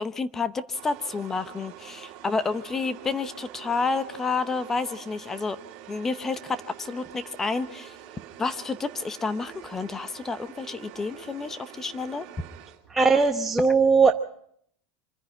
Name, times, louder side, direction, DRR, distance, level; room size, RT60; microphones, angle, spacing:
voice 1, 0.0-5.6 5.9-8.0 8.4-12.3, left 4 dB, 15° left, 13 dB, 0.8 m, -30 dB
sound 1, 0.7-13.1, right 12 dB, 50° right, 3.0 m, -46 dB
voice 2, 12.9-14.1, right 4 dB, 10° right, 2 dB, 1.0 m, -19 dB
25.5 x 10.5 x 9.8 m, 0.69 s
supercardioid pair, 140°, 2 cm